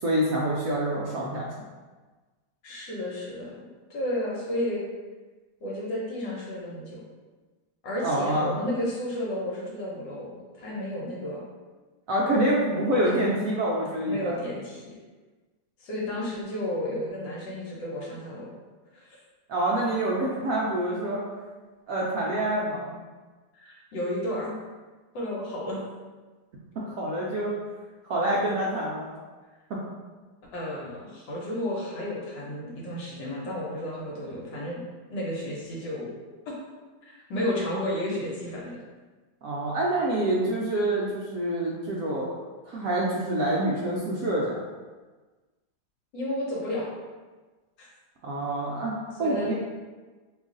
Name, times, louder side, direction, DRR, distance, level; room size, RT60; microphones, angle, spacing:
voice 1, 0.0-1.5 8.0-8.6 12.1-14.4 19.5-21.2 21.9-23.0 26.9-27.5 28.0-29.1 29.7-29.8 39.4-42.3 42.6-44.6 48.2-49.5, right 1 dB, 80° right, -5 dB, 0.7 m, -26 dB
voice 2, 2.6-3.6 3.9-4.8 5.6-7.0 7.8-11.4 13.0-13.1 14.1-15.0 15.8-18.5 18.9-19.2 23.5-24.5 25.1-25.8 30.5-34.8 35.1-36.1 37.0-38.8 46.1-47.0 47.8-47.9 49.2-49.5, left 1 dB, 80° left, -4 dB, 1.5 m, -32 dB
3.0 x 2.3 x 3.7 m, 1.3 s
omnidirectional pair, 2.0 m